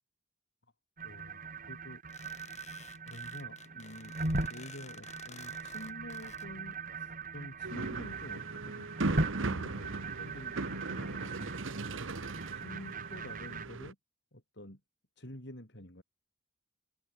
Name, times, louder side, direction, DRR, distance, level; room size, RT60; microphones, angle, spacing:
voice 1, 1.0-1.4 1.7-2.0 2.7-4.2 4.5-11.6 12.6-14.0 14.3-14.8 15.2-16.0, left 1 dB, 55° left, 5.8 m, -49 dB
sound 1, 1.0-13.7, right 2 dB, 40° right, 4.2 m, -39 dB
sound 2, 2.1-6.5, left 6 dB, 35° left, 3.4 m, -53 dB
sound 3, 7.6-13.9, right 3 dB, 70° right, 1.1 m, -38 dB
open air
head